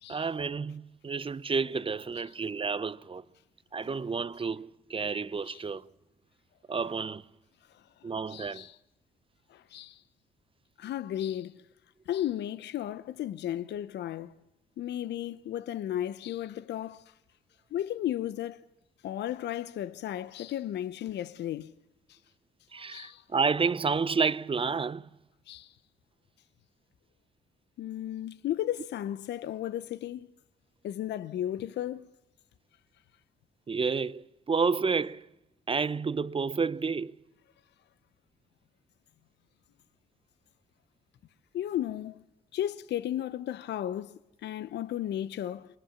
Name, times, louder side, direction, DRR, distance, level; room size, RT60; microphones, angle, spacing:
voice 1, 0.1-3.2 3.7-5.8 6.7-7.2 8.0-8.7 22.7-25.0 33.7-35.3 35.7-37.1, right 5 dB, 30° right, 0.8 m, -30 dB
voice 2, 7.7-8.8 9.5-10.0 10.8-11.6 12.1-14.3 14.8-17.1 17.7-18.6 19.0-21.7 22.1-22.2 22.7-23.2 25.5-25.7 27.8-30.3 30.8-32.1 41.5-42.2 42.5-45.7, left 12 dB, 65° left, 0.8 m, -34 dB
24.0 x 20.0 x 7.2 m
hypercardioid pair, 50°, 19 cm